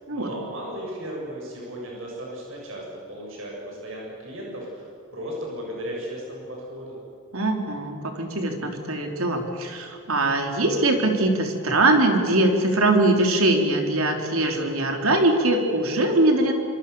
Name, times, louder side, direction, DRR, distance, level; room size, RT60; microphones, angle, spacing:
voice 1, 0.1-7.0, equal, 70° right, -2 dB, 7.5 m, -35 dB
voice 2, 7.3-16.5, right 2 dB, 85° right, 3 dB, 3.8 m, -22 dB
26.5 x 25.5 x 7.1 m, 2.4 s
head